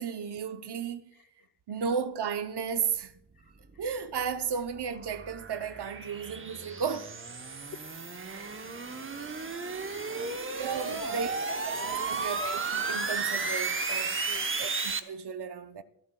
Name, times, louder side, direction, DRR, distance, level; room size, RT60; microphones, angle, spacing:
voice 1, 0.0-1.0 1.7-3.1 3.8-7.2 8.2-8.6 10.6-11.3 11.7-14.2 14.6-15.8, right 6 dB, 55° right, 0.8 m, -34 dB
voice 2, 1.1-1.5 3.3-3.8 7.4-7.6 8.3-8.6 9.4-9.7 10.1-10.4 10.8-11.4 11.8-12.3 14.3-14.7, left 7 dB, 45° left, 0.7 m, -49 dB
sound 1, 3.7-15.0, right 4 dB, 25° right, 0.9 m, -34 dB
25.5 x 11.5 x 2.3 m
cardioid pair, 75°, 47 cm